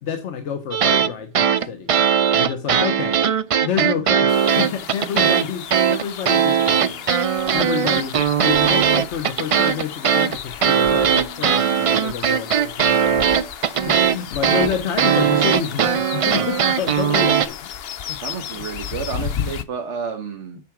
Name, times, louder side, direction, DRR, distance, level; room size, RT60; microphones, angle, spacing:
voice 1, 0.0-1.9 2.3-3.2 3.6-17.7 18.1-18.2 18.5-18.6, left 7 dB, 90° left, 1.2 m, -29 dB
sound 1, 0.7-1.1 1.3-5.4 5.7-17.5, right 8 dB, 65° right, 0.3 m, -19 dB
sound 2, 4.3-19.6, left 8 dB, 65° left, 0.9 m, -34 dB
voice 2, 18.2-20.6, right 6 dB, 90° right, 1.4 m, -30 dB
8.2 x 4.6 x 5.9 m
omnidirectional pair, 1.2 m